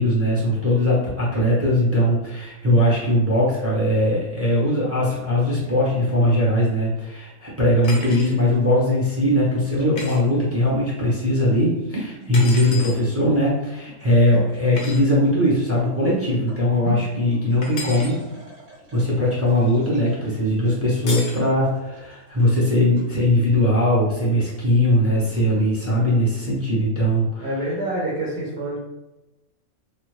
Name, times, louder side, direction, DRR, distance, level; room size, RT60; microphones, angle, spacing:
voice 1, 0.0-18.2 18.9-27.5, left 1 dB, 15° right, -7 dB, 0.5 m, -20 dB
sound 1, 7.8-8.3 10.0-10.2 12.3-13.0 14.8-15.0 17.6-18.1 21.1-21.4, left 3 dB, 55° left, 0.6 m, -32 dB
sound 2, 8.4-23.1, right 1 dB, 90° right, 1.6 m, -42 dB
voice 2, 27.4-28.8, right 1 dB, 55° right, -4 dB, 0.8 m, -27 dB
3.0 x 2.1 x 3.1 m, 1.0 s
omnidirectional pair, 1.5 m